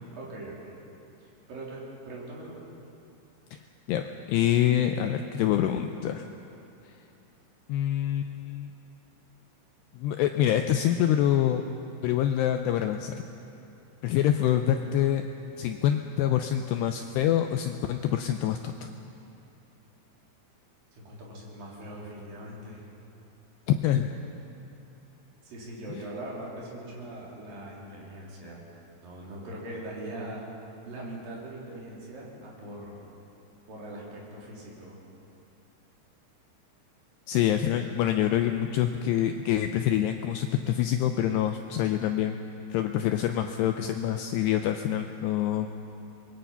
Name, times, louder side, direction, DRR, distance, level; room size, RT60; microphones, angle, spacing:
voice 1, 0.1-0.8 1.2-2.6 20.9-22.8 25.4-30.4 30.8-33.0 33.7-35.0, right 1 dB, 50° right, -4 dB, 5.2 m, -41 dB
voice 2, 3.9-6.2 7.7-8.7 9.9-11.6 12.0-13.1 14.0-15.2 15.6-18.9 23.7-24.1 37.3-42.4 42.7-45.7, left 11 dB, 90° left, 6 dB, 2.4 m, -26 dB
25.0 x 21.0 x 5.7 m, 2.9 s
omnidirectional pair, 5.6 m